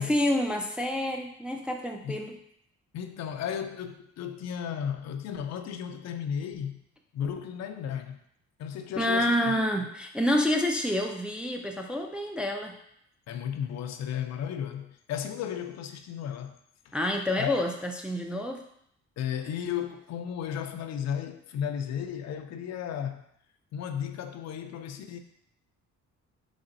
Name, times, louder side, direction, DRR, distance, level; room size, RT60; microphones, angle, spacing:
voice 1, 0.0-2.4 9.0-12.7 16.9-18.6, left 1 dB, 5° right, 0.3 m, -28 dB
voice 2, 2.9-6.8 7.1-8.2 8.6-9.5 13.3-16.6 16.9-17.0 17.4-17.7 19.2-23.2 23.7-25.2, left 8 dB, 60° left, 0.4 m, -34 dB
4.0 x 3.3 x 2.5 m
cardioid pair, 90°, 30 cm